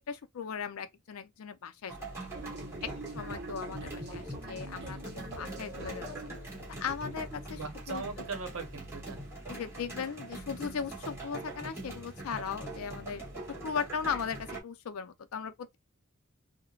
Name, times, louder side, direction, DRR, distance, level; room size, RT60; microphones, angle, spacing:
voice 1, 0.1-2.1 2.8-6.1 6.8-7.6 7.9-8.0 9.5-13.2 13.6-15.8, left 6 dB, 90° left, 0.4 m, -37 dB
sound 1, 1.9-14.6, right 1 dB, 10° right, 1.0 m, -43 dB
sound 2, 2.3-8.1, right 1 dB, 50° right, 0.6 m, -45 dB
voice 2, 7.5-9.2, right 4 dB, 85° right, 0.8 m, -39 dB
3.1 x 2.1 x 2.3 m
head